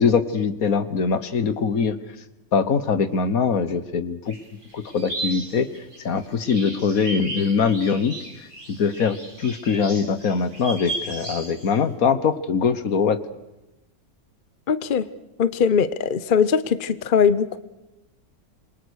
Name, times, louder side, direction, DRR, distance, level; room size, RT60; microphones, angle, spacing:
voice 1, 0.0-2.0 2.5-4.4 4.7-5.7 6.1-8.1 8.7-13.2, left 5 dB, 70° left, 13 dB, 1.7 m, -22 dB
sound 1, 4.3-11.7, right 2 dB, 35° right, 8.2 m, -35 dB
voice 2, 14.7-15.1 15.4-17.6, left 6 dB, 40° left, 14 dB, 1.0 m, -20 dB
27.0 x 23.5 x 6.5 m, 1.0 s
omnidirectional pair, 1.6 m